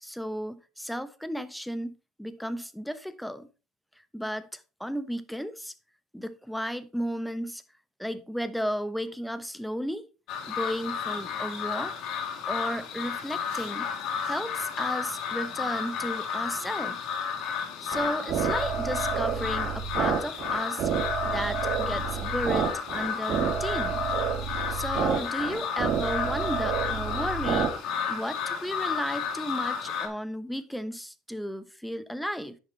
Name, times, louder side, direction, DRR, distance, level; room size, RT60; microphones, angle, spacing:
voice 1, 0.0-3.5 4.1-5.7 6.1-7.6 8.0-10.1 10.5-11.9 12.5-13.9 14.2-17.0 17.8-20.9 21.2-24.0 24.7-27.7 28.1-32.6, equal, ahead, 1.0 m, -34 dB
sound 1, 10.3-30.1, left 7 dB, 65° left, 2.8 m, -32 dB
sound 2, 17.9-27.7, right 7 dB, 60° right, 1.9 m, -30 dB
10.5 x 6.6 x 4.1 m
supercardioid pair, 105°, 0 cm